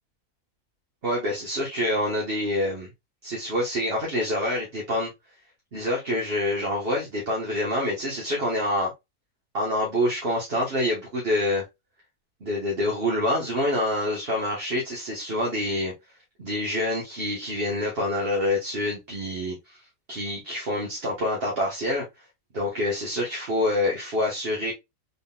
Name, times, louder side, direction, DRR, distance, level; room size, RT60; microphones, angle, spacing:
voice 1, 1.0-2.9 3.2-5.1 5.7-8.9 9.5-11.6 12.4-15.9 16.4-19.8 20.1-22.1 22.5-24.7, left 1 dB, 45° right, 1.3 m, -26 dB
4.1 x 3.7 x 2.2 m
omnidirectional pair, 1.5 m